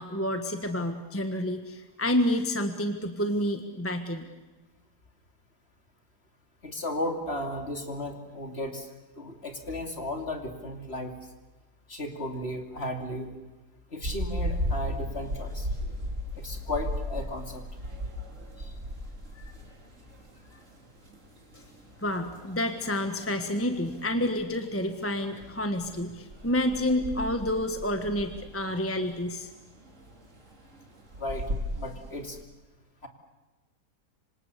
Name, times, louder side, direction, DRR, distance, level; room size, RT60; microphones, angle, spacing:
voice 1, 0.0-4.3 22.0-29.5, left 1 dB, 10° left, 6 dB, 1.3 m, -29 dB
voice 2, 6.6-8.9 9.2-11.2 11.9-13.3 13.9-15.7 16.4-17.6 18.6-18.7 19.3-19.5 31.2-31.5 31.8-32.4 33.0-33.1, left 1 dB, 40° left, 4 dB, 2.9 m, -35 dB
sound 1, 14.0-32.4, equal, 50° right, 3.5 m, -37 dB
26.5 x 26.0 x 6.9 m, 1.2 s
omnidirectional pair, 1.7 m